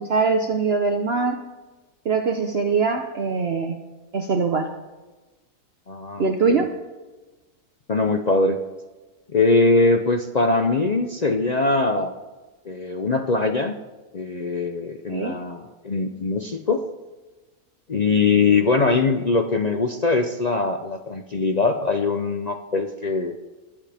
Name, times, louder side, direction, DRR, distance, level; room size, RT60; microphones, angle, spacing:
voice 1, 0.0-1.4 2.0-3.7 4.1-4.7 6.2-6.7 15.1-15.3, right 4 dB, 50° right, 4 dB, 0.9 m, -22 dB
voice 2, 5.9-6.6 7.9-8.6 9.3-12.1 12.7-13.8 14.1-16.9 17.9-23.4, left 3 dB, 50° left, 5 dB, 0.4 m, -22 dB
21.0 x 8.2 x 3.5 m, 1.2 s
omnidirectional pair, 1.6 m